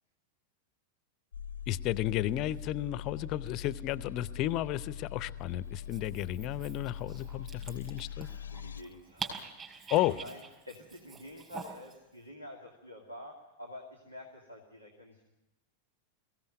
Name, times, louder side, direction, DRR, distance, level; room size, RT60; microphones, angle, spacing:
sound 1, 1.3-8.8, left 9 dB, 70° left, 0.7 m, -42 dB
voice 1, 1.7-8.3 9.9-10.1, left 14 dB, 40° left, 18 dB, 0.7 m, -33 dB
Dog, 5.7-12.0, right 5 dB, 20° right, 5.0 m, -46 dB
voice 2, 8.5-15.3, left 1 dB, 85° right, 1 dB, 2.5 m, -48 dB
22.5 x 16.5 x 9.2 m, 0.99 s
figure-of-eight pair, 90°, 0 cm